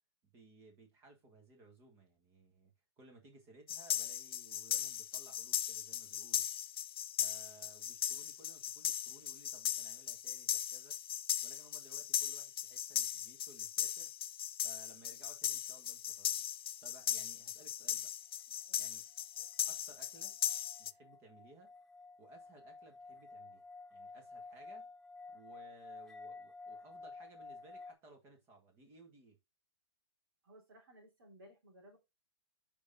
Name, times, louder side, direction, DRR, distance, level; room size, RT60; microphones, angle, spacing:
voice 1, 0.2-6.5 7.2-11.0 11.4-14.1 14.6-16.4 16.8-18.1 18.8-19.0 19.4-20.4 20.8-21.7 22.2-24.9 25.3-29.4, right 2 dB, 20° right, 1.8 m, -60 dB
sound 1, 3.7-20.9, left 11 dB, 60° left, 0.5 m, -38 dB
sound 2, 19.5-27.9, left 3 dB, 5° left, 0.7 m, -52 dB
voice 2, 30.4-32.0, equal, 60° right, 3.5 m, -59 dB
5.2 x 5.0 x 5.4 m
hypercardioid pair, 170°, 14 cm